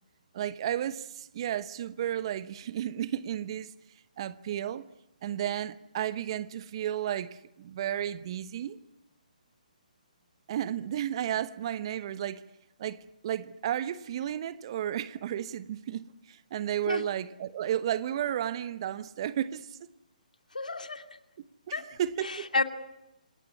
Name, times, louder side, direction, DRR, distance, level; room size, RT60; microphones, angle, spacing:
voice 1, 0.3-3.7 4.2-4.8 5.2-8.8 10.5-12.4 12.8-19.8 21.7-22.5, right 10 dB, 40° right, 1.0 m, -33 dB
voice 2, 20.5-21.0 21.7-21.9 22.2-22.6, left 3 dB, 75° left, 2.6 m, -30 dB
27.0 x 19.5 x 9.7 m
figure-of-eight pair, 140°, 4 cm